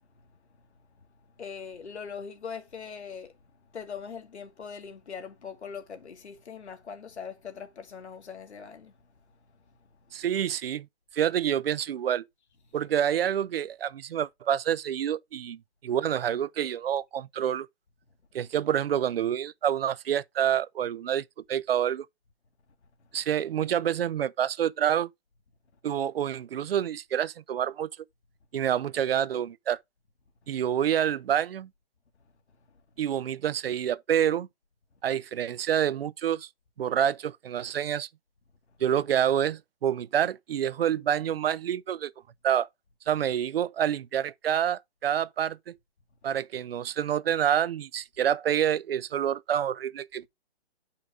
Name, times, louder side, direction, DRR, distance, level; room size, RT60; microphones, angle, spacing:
voice 1, 1.4-3.3 3.7-8.9, left 6 dB, 85° left, 1.9 m, -41 dB
voice 2, 10.1-10.9 11.1-12.3 12.7-17.7 18.3-22.1 23.1-25.1 25.8-27.9 28.5-29.8 30.5-31.7 33.0-34.5 35.0-36.5 36.8-38.1 38.8-42.1 42.4-42.7 43.1-45.8 46.2-50.3, right 9 dB, 65° right, 0.5 m, -27 dB
7.6 x 5.6 x 3.6 m
hypercardioid pair, 165°, 33 cm